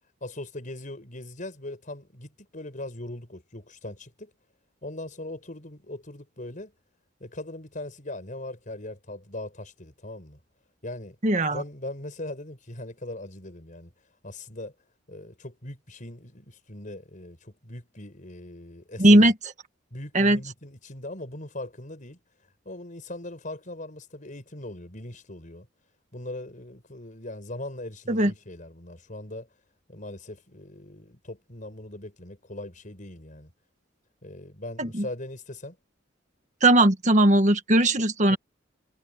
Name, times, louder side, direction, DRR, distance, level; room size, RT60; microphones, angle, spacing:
voice 1, 0.2-4.3 4.8-6.7 7.2-10.4 10.8-11.2 11.5-14.7 15.1-19.3 19.9-25.7 26.1-29.6 29.9-33.5 34.2-35.8 38.3-38.4, left 1 dB, 45° left, 5.6 m, -40 dB
voice 2, 11.2-11.6 19.0-19.3 20.1-20.4 28.1-28.3 34.8-35.0 36.6-38.4, right 1 dB, 40° right, 1.7 m, -19 dB
head